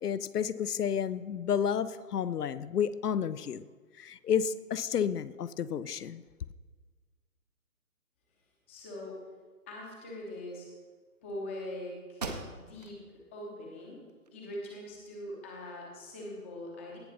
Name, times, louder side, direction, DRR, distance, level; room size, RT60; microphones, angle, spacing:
voice 1, 0.0-3.7 4.0-6.2, left 8 dB, 85° left, 16 dB, 0.6 m, -31 dB
voice 2, 8.7-9.2 9.7-10.7 11.2-12.2 12.5-13.0 13.3-14.0 14.3-17.0, left 1 dB, 10° left, -2 dB, 0.8 m, -42 dB
sound 1, 11.6-11.7 12.1-13.0 13.5-13.6 14.1-15.0, right 3 dB, 25° right, 0.7 m, -41 dB
17.5 x 5.8 x 4.0 m, 1.5 s
hypercardioid pair, 155°, 45 cm